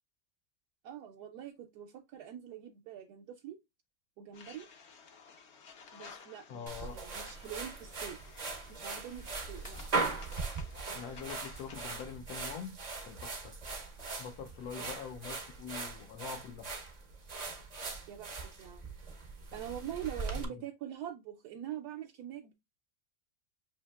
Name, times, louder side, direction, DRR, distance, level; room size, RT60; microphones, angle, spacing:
voice 1, 0.8-3.6 4.2-4.7 5.9-8.2 8.7-9.8 18.1-18.8 19.5-22.5, right 10 dB, 80° right, 1.1 m, -44 dB
sound 1, 4.3-12.0, left 5 dB, 55° left, 0.8 m, -54 dB
voice 2, 6.5-7.0 10.9-13.6 14.2-16.7 20.3-20.6, left 7 dB, 75° left, 1.1 m, -44 dB
sound 2, 6.7-20.4, right 4 dB, 50° right, 0.5 m, -40 dB
6.8 x 2.8 x 2.3 m
omnidirectional pair, 1.7 m